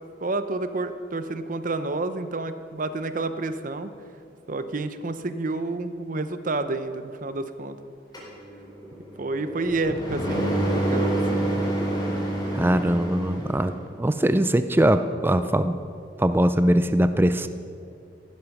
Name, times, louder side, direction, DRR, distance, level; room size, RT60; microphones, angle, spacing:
voice 1, 0.2-3.9 4.5-7.8 9.2-11.2, right 2 dB, 50° right, 11 dB, 0.8 m, -29 dB
sound 1, 8.1-13.7, right 1 dB, 20° left, 4.3 m, -27 dB
voice 2, 12.5-15.8 16.2-17.5, right 1 dB, 10° right, 10 dB, 0.4 m, -21 dB
15.0 x 12.0 x 6.0 m, 2.4 s
head